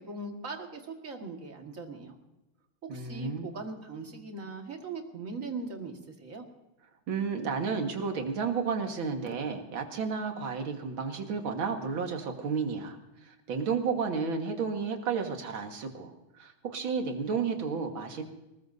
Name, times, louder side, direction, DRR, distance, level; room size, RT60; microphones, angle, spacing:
voice 1, 0.0-2.2 2.8-6.4, right 3 dB, 40° right, 3 dB, 2.1 m, -40 dB
voice 2, 2.9-3.5 7.1-13.0 13.3-16.1 16.4-18.2, right 5 dB, 70° right, 4 dB, 2.4 m, -32 dB
21.0 x 19.5 x 2.7 m, 0.99 s
omnidirectional pair, 2.3 m